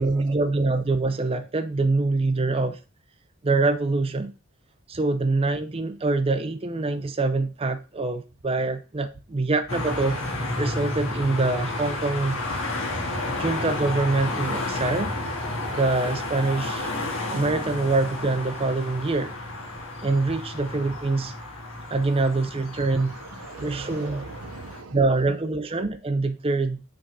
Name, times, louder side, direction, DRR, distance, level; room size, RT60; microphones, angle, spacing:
voice 1, 0.0-2.8 3.4-4.3 4.9-10.2 10.6-12.4 13.4-15.1 15.7-16.9 17.3-19.4 20.0-21.3 21.9-23.1 23.6-24.2 24.9-26.8, right 3 dB, 25° right, 0.5 m, -25 dB
sound 1, 9.7-24.8, left 2 dB, 60° left, 1.8 m, -31 dB
voice 2, 22.3-25.4, right 3 dB, 80° right, 0.8 m, -42 dB
6.2 x 3.6 x 6.0 m
head